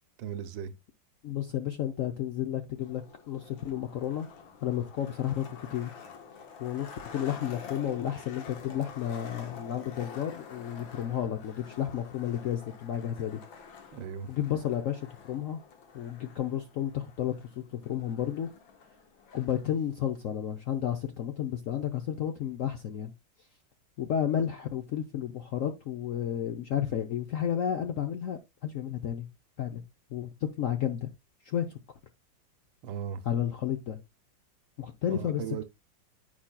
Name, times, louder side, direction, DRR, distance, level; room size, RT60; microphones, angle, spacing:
voice 1, 0.2-0.7 13.9-14.3 32.8-33.2 35.1-35.6, right 8 dB, 80° right, 1.4 m, -37 dB
voice 2, 1.2-4.3 4.6-5.9 6.6-13.4 14.3-15.6 15.9-18.5 19.3-23.1 24.0-29.3 29.6-29.8 30.1-30.3 30.6-31.1 31.4-31.8 33.3-34.0 34.8-35.4, left 10 dB, 70° left, 0.8 m, -32 dB
Skateboard, 2.7-19.7, left 6 dB, 85° left, 2.0 m, -48 dB
8.8 x 5.6 x 2.2 m
omnidirectional pair, 2.1 m